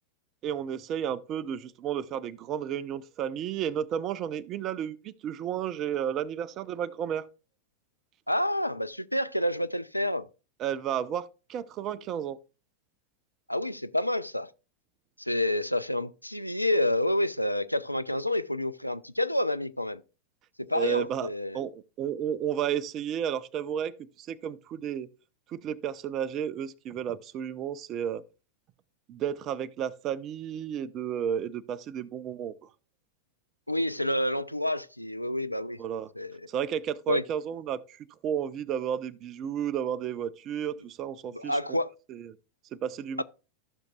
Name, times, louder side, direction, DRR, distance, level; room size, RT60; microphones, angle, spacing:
voice 1, 0.4-7.3 10.6-12.4 20.7-21.3 21.5-25.1 25.5-28.2 29.1-32.5 35.8-36.1 36.5-41.8 42.1-42.4 42.7-43.2, right 9 dB, 35° right, 0.6 m, -32 dB
voice 2, 8.3-10.3 13.5-14.5 15.2-20.0 20.7-21.6 33.7-35.8 36.2-36.4 37.1-37.2 41.2-41.9 43.2-43.3, left 1 dB, 90° left, 0.4 m, -28 dB
14.5 x 6.5 x 2.3 m
figure-of-eight pair, 90°, 0 cm